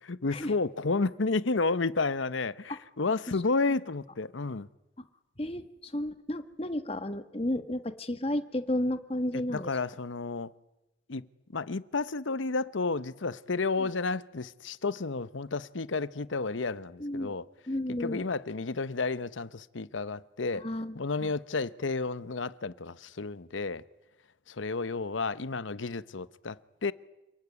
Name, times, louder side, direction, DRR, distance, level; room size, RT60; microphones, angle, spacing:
voice 1, 0.0-4.7 9.5-10.5 11.1-17.5 17.9-20.7 20.9-23.8 24.5-26.9, left 3 dB, 85° left, 0.9 m, -31 dB
voice 2, 5.4-9.7 13.8-13.9 17.0-17.4 17.7-18.2 20.5-21.0 21.2-21.3, left 1 dB, 30° left, 1.4 m, -32 dB
28.5 x 19.5 x 9.6 m
head